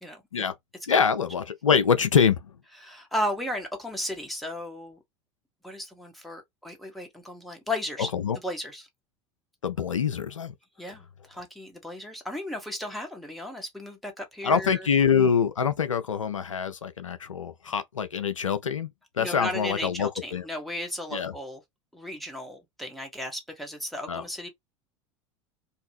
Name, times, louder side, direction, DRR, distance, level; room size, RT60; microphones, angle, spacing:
voice 1, 0.9-2.4 8.0-8.4 9.6-10.5 14.4-18.9 19.2-20.4 21.1-21.3 24.1-24.2, left 7 dB, 85° left, 0.4 m, -25 dB
voice 2, 2.8-5.0 5.6-8.1 8.4-8.9 10.8-14.9 19.2-21.6 21.9-24.5, left 1 dB, ahead, 1.0 m, -35 dB
2.6 x 2.4 x 3.0 m
figure-of-eight pair, 80°, 16 cm